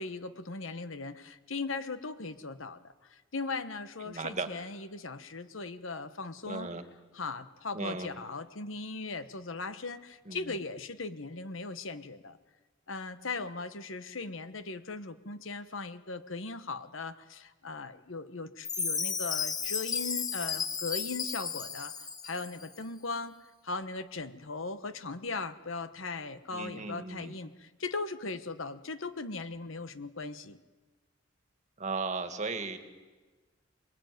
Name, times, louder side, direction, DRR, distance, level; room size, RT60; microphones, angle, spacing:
voice 1, 0.0-2.8 3.1-6.7 7.1-12.4 12.9-23.4 23.6-30.6, left 3 dB, 70° left, 12 dB, 1.2 m, -38 dB
voice 2, 4.1-4.5 6.5-6.8 7.7-8.1 10.3-10.6 26.5-27.3 31.8-32.8, right 3 dB, 35° right, 7 dB, 2.0 m, -36 dB
Chime, 18.6-22.6, left 5 dB, 20° left, 1.0 m, -34 dB
27.5 x 21.0 x 9.3 m, 1.3 s
head